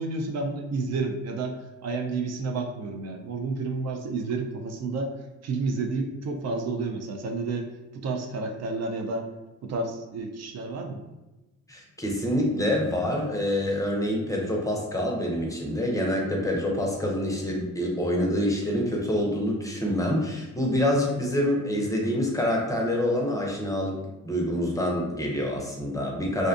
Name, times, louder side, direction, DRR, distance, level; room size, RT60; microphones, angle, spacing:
voice 1, 0.0-5.1 5.4-9.3 9.6-11.0, right 3 dB, 60° right, 4 dB, 0.4 m, -30 dB
voice 2, 11.7-24.0 24.2-26.5, left 1 dB, 10° left, -1 dB, 0.5 m, -26 dB
2.6 x 2.1 x 2.5 m, 1.1 s
cardioid pair, 90°, 30 cm